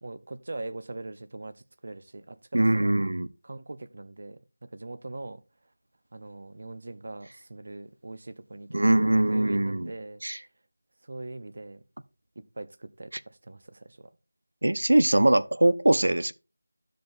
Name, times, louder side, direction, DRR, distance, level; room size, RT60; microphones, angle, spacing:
voice 1, 0.0-3.0 3.4-5.4 6.1-10.4 11.0-11.8 12.4-14.1, right 2 dB, 40° right, 0.7 m, -41 dB
voice 2, 2.5-3.3 8.7-9.9 10.2-10.4 14.6-16.3, right 1 dB, 80° right, 0.7 m, -22 dB
14.5 x 5.1 x 2.5 m
figure-of-eight pair, 180°, 0 cm